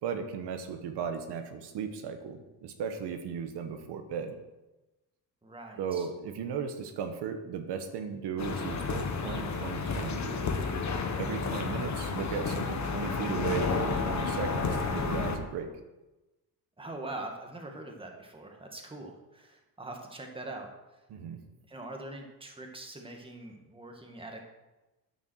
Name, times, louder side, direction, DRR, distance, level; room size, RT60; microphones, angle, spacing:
voice 1, 0.0-4.3 5.8-10.5 11.2-15.7 21.1-21.4, right 7 dB, 85° right, 6 dB, 1.3 m, -36 dB
voice 2, 5.4-6.1 16.8-21.0 21.7-24.4, right 2 dB, 15° right, 2 dB, 1.8 m, -43 dB
sound 1, 8.4-15.4, left 4 dB, 45° left, 1.4 m, -31 dB
9.7 x 7.2 x 6.3 m, 1.1 s
cardioid pair, 125°, 39 cm